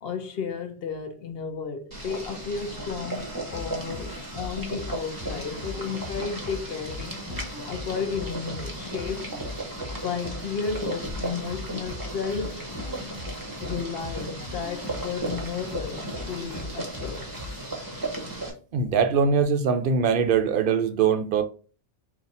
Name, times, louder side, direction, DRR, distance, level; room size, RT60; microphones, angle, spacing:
voice 1, 0.0-7.2 7.6-9.3 9.9-12.7 13.6-17.7, left 6 dB, 60° left, 0.8 m, -33 dB
Boiling, 1.9-18.5, right 2 dB, 20° right, 0.7 m, -35 dB
sound 1, 3.5-17.6, left 2 dB, 5° left, 1.2 m, -40 dB
voice 2, 18.7-21.4, right 6 dB, 60° right, 0.6 m, -22 dB
3.9 x 2.6 x 4.0 m
omnidirectional pair, 1.2 m